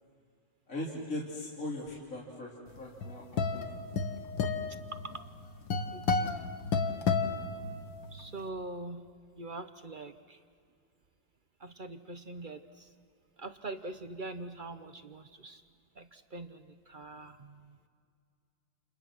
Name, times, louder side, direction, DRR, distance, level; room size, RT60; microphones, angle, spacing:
voice 1, 0.7-3.7 4.0-4.1, left 1 dB, 40° left, -4 dB, 3.4 m, -40 dB
sound 1, 2.8-8.2, left 4 dB, 70° left, 2.1 m, -32 dB
voice 2, 4.7-5.3 5.9-6.5 8.1-9.1 9.3-10.4 11.6-12.9 13.4-15.6 15.9-17.8, right 2 dB, 50° right, 9 dB, 0.6 m, -43 dB
30.0 x 29.0 x 6.1 m, 2.3 s
omnidirectional pair, 2.2 m